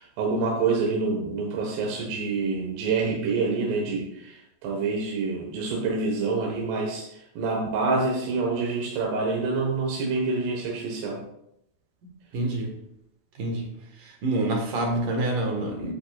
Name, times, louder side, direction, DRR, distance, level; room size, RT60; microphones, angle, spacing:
voice 1, 0.0-11.2, right 4 dB, 80° right, -2 dB, 3.2 m, -27 dB
voice 2, 12.3-12.7 13.4-13.7 14.0-15.9, right 2 dB, 60° right, 2 dB, 2.4 m, -27 dB
11.0 x 8.2 x 2.3 m, 0.79 s
omnidirectional pair, 4.8 m